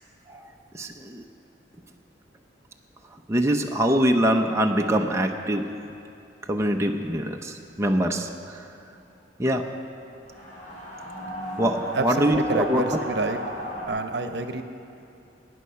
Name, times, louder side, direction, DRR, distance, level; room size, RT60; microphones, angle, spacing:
voice 1, 0.7-1.2 3.3-5.7 6.5-8.6 9.4-9.7 11.6-12.8, right 1 dB, 15° right, 2 dB, 0.7 m, -24 dB
sound 1, 10.3-13.9, right 1 dB, 45° left, 3.7 m, -34 dB
voice 2, 11.9-13.4 13.9-14.6, right 2 dB, 70° right, 7 dB, 0.9 m, -28 dB
19.0 x 9.3 x 5.7 m, 2.7 s
head